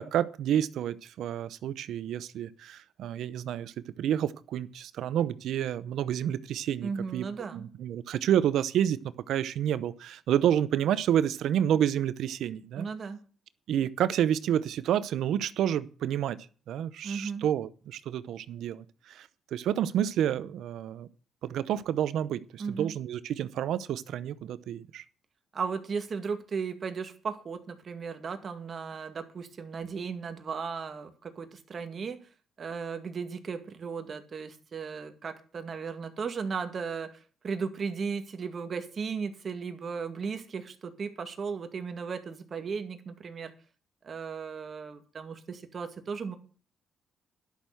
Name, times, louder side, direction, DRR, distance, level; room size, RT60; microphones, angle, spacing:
voice 1, 0.0-7.2 7.5-9.0 9.3-12.9 13.7-16.4 16.7-21.1 21.4-25.0, right 10 dB, 75° right, 16 dB, 0.7 m, -29 dB
voice 2, 6.8-7.7 12.8-13.2 17.0-17.5 22.6-22.9 25.5-32.2 32.6-43.5 44.0-46.4, right 5 dB, 45° right, 7 dB, 2.0 m, -36 dB
11.5 x 6.5 x 7.8 m, 0.40 s
cardioid pair, 90°, 0 cm